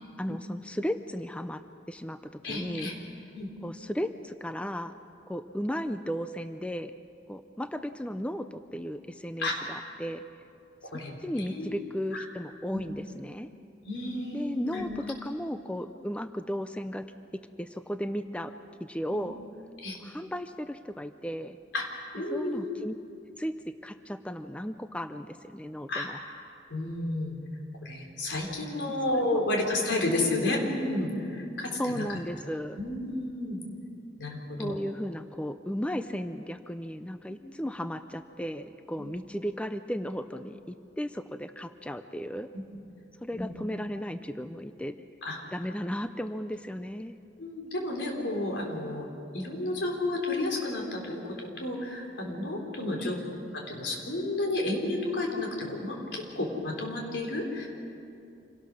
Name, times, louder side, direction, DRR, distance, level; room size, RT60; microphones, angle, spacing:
voice 1, 0.2-2.9 3.6-4.9 5.3-6.9 7.3-10.2 10.8-10.9 11.2-13.5 14.3-17.1 17.6-18.5 18.8-19.4 20.0-21.6 22.3-22.9 23.4-26.2 29.1-29.4 31.8-32.8 34.6-42.5 43.2-45.0 45.5-47.2 53.0-53.2, equal, 5° left, 10 dB, 0.4 m, -35 dB
voice 2, 2.4-2.9 3.3-3.5 9.4-9.6 10.8-11.7 12.1-12.2 12.7-12.8 13.8-14.9 19.1-19.2 19.8-20.0 21.7-22.7 25.9-26.1 26.7-27.3 27.8-32.2 32.8-33.6 34.2-34.7 37.3-37.4 39.0-39.1 42.5-42.6 43.3-43.5 45.2-45.4 47.4-49.1 49.3-53.2 53.5-57.7, left 2 dB, 80° left, 0 dB, 3.8 m, -31 dB
26.5 x 17.5 x 6.3 m, 2.6 s
head